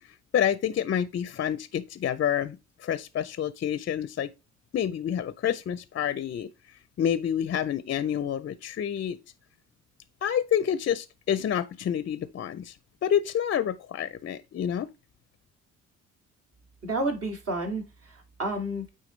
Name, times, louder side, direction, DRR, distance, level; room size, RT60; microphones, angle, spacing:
voice 1, 0.3-2.6 2.8-4.3 4.7-6.5 7.0-9.2 10.2-12.8 13.0-14.9, left 9 dB, 45° left, 0.5 m, -28 dB
voice 2, 16.8-18.9, right 1 dB, 50° right, 2.5 m, -31 dB
9.1 x 3.8 x 3.1 m
cardioid pair, 90°, 30 cm